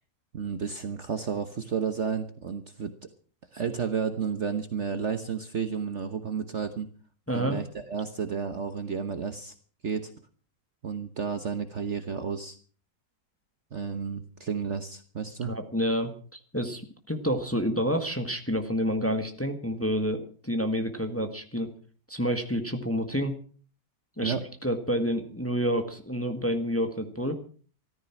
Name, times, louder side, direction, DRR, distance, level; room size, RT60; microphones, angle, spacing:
voice 1, 0.3-2.9 3.5-6.9 7.3-9.5 9.8-10.1 10.8-12.6 13.7-15.5 24.2-24.4, right 6 dB, 45° right, 8 dB, 1.2 m, -32 dB
voice 2, 7.3-7.6 15.4-16.8 17.1-21.7 22.1-23.4 24.2-24.3 24.6-27.4, equal, 10° left, 5 dB, 1.5 m, -28 dB
14.0 x 14.0 x 6.0 m, 0.43 s
omnidirectional pair, 1.9 m